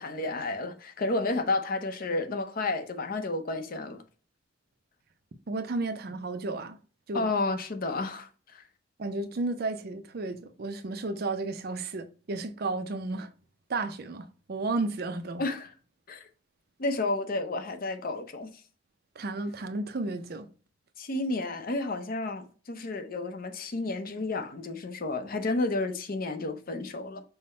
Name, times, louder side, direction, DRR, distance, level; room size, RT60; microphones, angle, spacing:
voice 1, 0.0-4.0 7.1-8.6 15.4-15.7 16.1-16.3 16.8-18.5 21.0-27.2, left 2 dB, 50° left, 0.6 m, -31 dB
voice 2, 5.5-6.8 7.1-7.3 9.0-13.3 13.7-15.4 19.2-20.5, right 3 dB, 55° right, 0.5 m, -33 dB
5.7 x 2.1 x 4.2 m
head